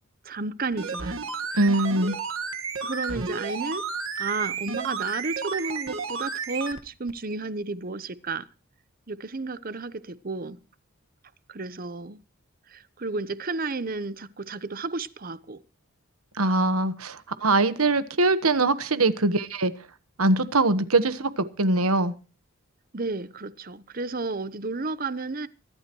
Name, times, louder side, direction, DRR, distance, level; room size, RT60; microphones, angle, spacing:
voice 1, 0.2-1.2 2.8-3.8 4.2-8.4 9.1-10.6 11.5-12.2 12.7-15.6 22.9-25.5, right 3 dB, 40° right, 0.8 m, -32 dB
sound 1, 0.7-6.8 7.1-7.2, right 5 dB, 65° right, 1.6 m, -32 dB
voice 2, 1.6-2.2 16.4-19.7 20.2-22.1, right 2 dB, 80° right, 1.3 m, -22 dB
24.5 x 12.0 x 3.1 m
head